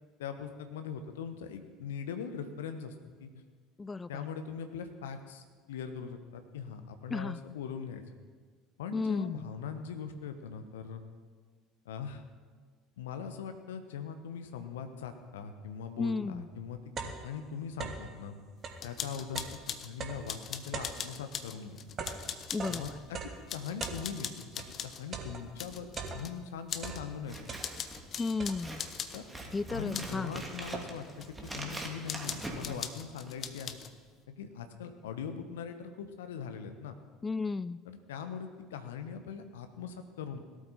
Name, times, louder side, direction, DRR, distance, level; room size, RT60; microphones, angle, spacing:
voice 1, 0.2-3.3 4.1-8.0 8.8-11.0 11.8-12.2 13.0-18.3 18.8-21.8 22.7-22.9 23.5-24.5 24.8-27.5 29.1-29.3 29.7-33.8 34.3-36.9 37.9-40.4, left 7 dB, 70° left, 8 dB, 1.2 m, -41 dB
voice 2, 3.8-4.2 7.1-7.4 8.9-9.5 16.0-16.5 22.5-23.0 28.2-28.9 29.5-30.4 37.2-37.8, left 4 dB, 20° left, 17 dB, 0.3 m, -34 dB
sound 1, 16.1-16.2 16.5-18.2 18.5-24.8 25.1-26.5 26.8-28.0 28.4-28.9 29.5-29.6 29.9-31.2, right 5 dB, 35° right, 1.7 m, -42 dB
sound 2, 18.8-19.9 20.3-23.0 23.5-25.0 25.6-26.3 26.7-27.0 27.3-29.2 29.9-30.2 30.6-31.6 32.1-33.9, left 8 dB, 40° left, 0.9 m, -41 dB
Scissors, 27.2-33.4, right 1 dB, 10° right, 2.5 m, -44 dB
17.5 x 12.5 x 4.3 m, 1.5 s
figure-of-eight pair, 65°, 0 cm